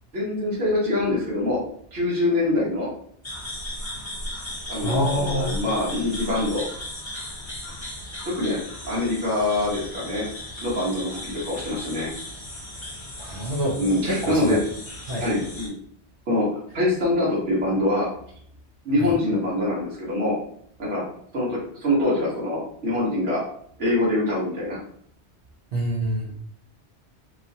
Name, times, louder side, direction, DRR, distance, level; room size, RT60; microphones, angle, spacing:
voice 1, 0.1-1.6 1.9-2.9 4.7-6.6 8.2-10.2 10.6-12.1 13.8-14.6 15.2-15.8 16.3-16.5 16.7-18.1 18.8-20.4 20.8-21.0 21.3-23.4 23.8-24.8, left 1 dB, 80° right, -7 dB, 1.4 m, -24 dB
sound 1, 3.2-15.7, left 1 dB, 25° left, 0.9 m, -36 dB
voice 2, 4.8-5.5 13.2-14.6 15.1-15.3 19.0-19.1 25.7-26.3, equal, 60° right, -4 dB, 0.7 m, -26 dB
3.1 x 2.4 x 2.6 m, 0.63 s
omnidirectional pair, 1.2 m